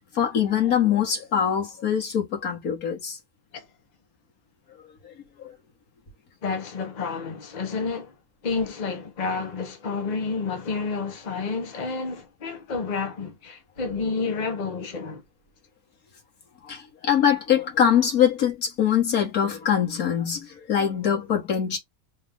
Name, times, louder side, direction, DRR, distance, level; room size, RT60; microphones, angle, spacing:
voice 1, 0.1-3.2 16.7-21.8, left 8 dB, 90° left, 2.0 m, -23 dB
voice 2, 6.4-8.2 8.4-15.2, left 4 dB, 35° left, 0.9 m, -30 dB
4.1 x 2.6 x 3.4 m
omnidirectional pair, 1.5 m